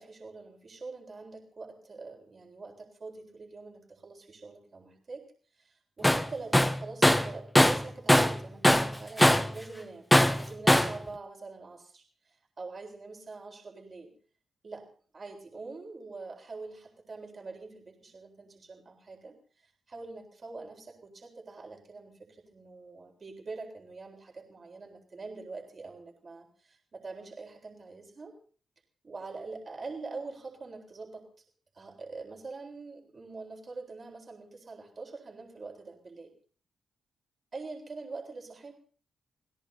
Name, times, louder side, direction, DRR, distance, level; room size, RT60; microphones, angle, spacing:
voice 1, 0.0-5.2 5.5-14.1 14.6-14.9 15.1-28.3 29.0-31.2 31.7-36.3 37.5-38.7, right 3 dB, 40° right, 1 dB, 3.9 m, -44 dB
Tools, 6.0-6.3 6.5-8.4 8.6-9.6 10.1-11.0, left 1 dB, 5° left, 0.7 m, -21 dB
28.0 x 17.5 x 2.7 m, 0.42 s
cardioid pair, 95°, 0 cm